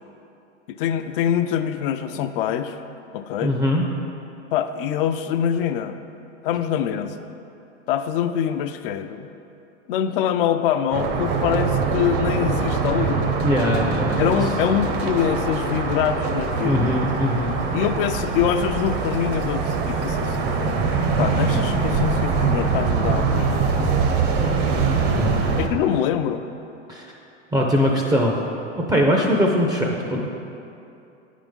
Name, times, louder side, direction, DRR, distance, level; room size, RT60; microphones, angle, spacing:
voice 1, 0.7-2.8 3.1-3.5 4.5-6.0 6.4-7.2 7.9-9.3 9.9-13.3 14.2-16.9 17.7-20.4 21.2-23.8 25.6-26.4, left 9 dB, 50° left, 9 dB, 0.5 m, -24 dB
voice 2, 3.4-3.8 13.4-14.4 16.6-17.6 25.1-25.5 26.9-27.1 27.5-28.4 28.7-30.3, equal, 10° right, -1 dB, 0.5 m, -21 dB
sound 1, 10.9-25.7, right 4 dB, 50° right, 0.9 m, -23 dB
8.9 x 3.8 x 5.2 m, 2.8 s
hypercardioid pair, 100°, 36 cm